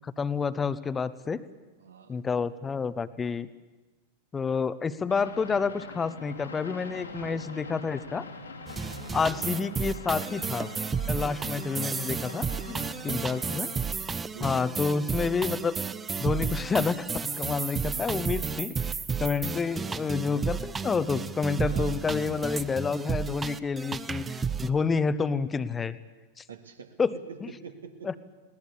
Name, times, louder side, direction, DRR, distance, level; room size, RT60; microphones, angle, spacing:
voice 1, 0.0-1.4 2.1-3.5 4.3-8.2 9.1-10.7 11.1-13.7 14.4-15.8 16.2-17.0 17.4-18.9 19.2-26.0 26.4-26.5 27.0-27.1 27.4-27.5 28.0-28.2, left 5 dB, 15° left, 15 dB, 1.0 m, -29 dB
voice 2, 1.8-2.2 7.0-7.4 9.0-9.8 12.7-13.5 14.3-14.8 21.6-22.4 23.0-23.1 26.5-27.0 27.6-28.1, right 7 dB, 70° right, 6 dB, 2.3 m, -47 dB
sound 1, 5.1-13.9, left 2 dB, 80° left, 2.7 m, -43 dB
sound 2, 8.7-24.7, right 5 dB, 15° right, 0.8 m, -32 dB
20.5 x 19.0 x 8.4 m, 1.2 s
figure-of-eight pair, 90°, 0 cm